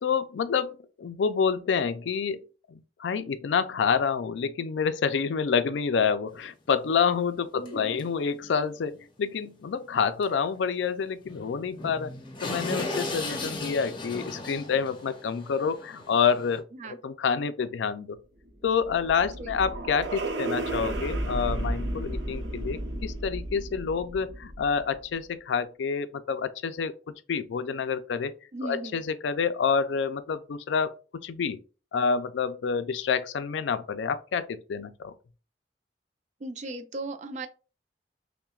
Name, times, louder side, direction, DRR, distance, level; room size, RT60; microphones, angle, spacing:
voice 1, 0.0-12.1 12.4-18.2 18.6-28.3 28.6-30.9 31.2-31.6 31.9-35.1, left 6 dB, 85° left, 0.4 m, -28 dB
sound 1, 6.3-6.4 6.8-6.9 7.7-7.8 8.0-8.1 8.4-8.5 10.2-10.3 10.6-10.7 11.2-16.6, left 2 dB, 30° left, 0.7 m, -36 dB
voice 2, 7.6-8.0 13.2-13.6 16.7-17.0 19.4-19.5 28.5-29.0 36.4-37.5, right 2 dB, 45° right, 0.4 m, -37 dB
sound 2, 18.4-24.9, right 1 dB, 85° right, 0.8 m, -33 dB
5.7 x 2.1 x 2.3 m
head